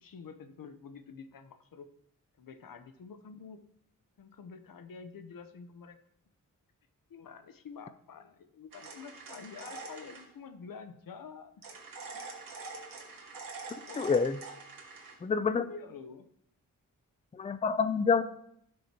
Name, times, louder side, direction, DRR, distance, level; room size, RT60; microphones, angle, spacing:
voice 1, 0.0-1.9 2.4-3.6 4.2-6.0 7.1-11.5 12.1-12.2 13.8-14.2 15.6-16.3, left 5 dB, 85° left, 9 dB, 0.9 m, -48 dB
sound 1, 8.7-10.3 11.6-15.1, right 3 dB, 85° right, 2.0 m, -45 dB
voice 2, 14.0-14.4 15.2-15.7 17.3-18.2, left 5 dB, 20° left, 12 dB, 0.4 m, -27 dB
16.5 x 6.4 x 2.9 m, 0.70 s
wide cardioid pair, 135°, 33 cm